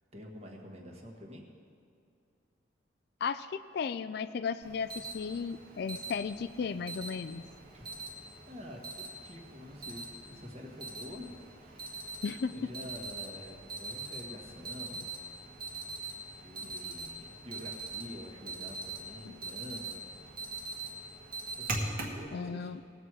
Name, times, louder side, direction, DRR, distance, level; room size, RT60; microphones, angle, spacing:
voice 1, 0.1-1.4 7.7-8.1 8.5-12.1 12.5-15.6 16.4-20.0 20.7-21.2 21.6-22.9, left 1 dB, 30° right, 0 dB, 1.6 m, -48 dB
voice 2, 3.2-7.4 12.2-12.7 19.3-19.4 22.3-22.8, left 5 dB, 55° left, 13 dB, 0.3 m, -35 dB
Alarm, 4.6-22.2, right 2 dB, 50° right, 1.6 m, -42 dB
20.0 x 7.5 x 4.8 m, 2.5 s
head